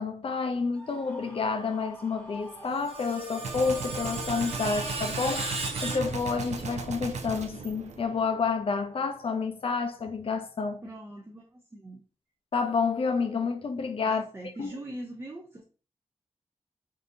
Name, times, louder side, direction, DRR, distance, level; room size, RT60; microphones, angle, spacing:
voice 1, 0.0-10.9 12.5-14.2 14.6-14.7, left 4 dB, 55° left, 0.5 m, -29 dB
Screaming, 0.7-3.4, equal, 5° left, 0.9 m, -48 dB
Screech, 2.4-6.7, right 2 dB, 60° right, 0.8 m, -36 dB
Gunshot gunfire, 3.4-8.7, right 5 dB, 80° right, 0.4 m, -37 dB
voice 2, 10.8-12.0 14.1-15.6, right 1 dB, 20° right, 0.4 m, -42 dB
3.6 x 2.6 x 2.6 m
wide cardioid pair, 110°, 12 cm